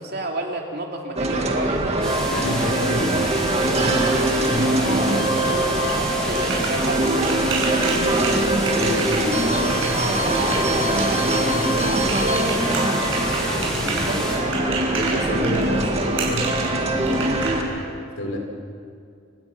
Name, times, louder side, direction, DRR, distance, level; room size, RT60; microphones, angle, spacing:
voice 1, 0.0-1.9 4.6-8.5 14.0-14.5, right 2 dB, 50° right, 1 dB, 2.8 m, -31 dB
sound 1, 1.2-17.6, right 1 dB, 30° right, 2.2 m, -22 dB
sound 2, 2.0-14.4, equal, 5° left, 4.2 m, -31 dB
voice 2, 2.2-3.4 3.7-5.6 8.7-12.8 13.4-14.2 15.0-17.8 18.2-18.4, left 1 dB, 80° left, 2 dB, 4.6 m, -30 dB
sound 3, 5.9-17.5, right 5 dB, 65° right, 7.1 m, -30 dB
29.5 x 18.0 x 6.2 m, 2.2 s
head